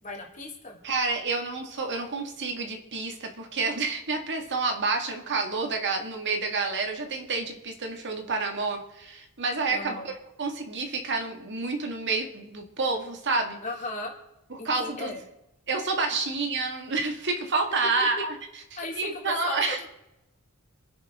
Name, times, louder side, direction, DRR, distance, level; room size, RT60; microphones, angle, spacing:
voice 1, 0.0-0.8 9.7-10.1 13.6-14.1 14.6-15.2 18.8-19.9, left 2 dB, 35° left, 0 dB, 2.8 m, -36 dB
voice 2, 0.8-10.1 10.4-13.6 14.5-15.1 15.7-18.3 18.9-19.8, right 3 dB, 55° right, 3 dB, 2.0 m, -29 dB
27.0 x 10.5 x 3.7 m, 0.91 s
head